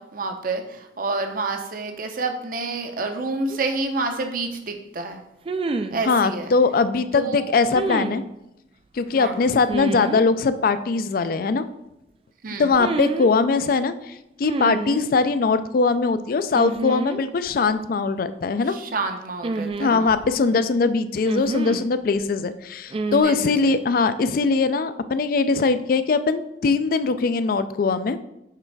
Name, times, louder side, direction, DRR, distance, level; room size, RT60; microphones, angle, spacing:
voice 1, 0.0-5.2 5.9-6.5 7.1-7.5 9.2-9.4 12.4-12.7 18.7-20.1 23.2-23.7, right 3 dB, 55° right, 5 dB, 0.7 m, -29 dB
sound 1, 3.5-3.6 5.4-6.0 7.7-8.2 9.7-10.2 12.7-13.3 14.4-15.1 16.5-17.2 17.5-17.6 19.4-20.3 21.2-21.9 22.9-23.2, right 3 dB, 30° right, 0.3 m, -28 dB
voice 2, 6.1-8.2 8.9-11.7 12.6-18.8 19.8-28.2, left 4 dB, 55° left, 12 dB, 0.4 m, -21 dB
6.7 x 3.3 x 4.6 m, 0.86 s
head